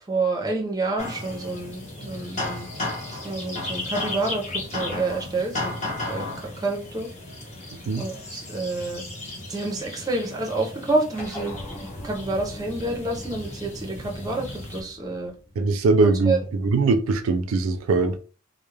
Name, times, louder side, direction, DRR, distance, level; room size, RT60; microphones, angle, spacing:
voice 1, 0.1-2.7 3.2-5.7 6.1-7.1 8.0-9.0 9.5-11.5 12.0-15.3 16.0-16.4, right 2 dB, 20° right, 0.5 m, -28 dB
sound 1, 1.0-14.8, left 2 dB, 35° left, 0.9 m, -35 dB
sound 2, 11.2-15.9, left 1 dB, 10° left, 1.0 m, -41 dB
voice 2, 15.6-18.2, right 3 dB, 90° right, 0.4 m, -21 dB
2.2 x 2.0 x 3.1 m
head